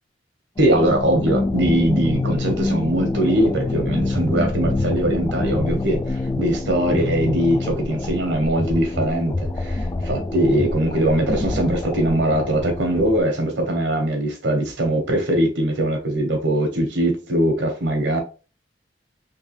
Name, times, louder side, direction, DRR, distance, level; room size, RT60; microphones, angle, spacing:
sound 1, 0.6-13.2, left 2 dB, 20° left, 0.3 m, -26 dB
voice 1, 0.6-18.2, right 1 dB, 90° right, 1.2 m, -21 dB
3.3 x 3.1 x 3.2 m
head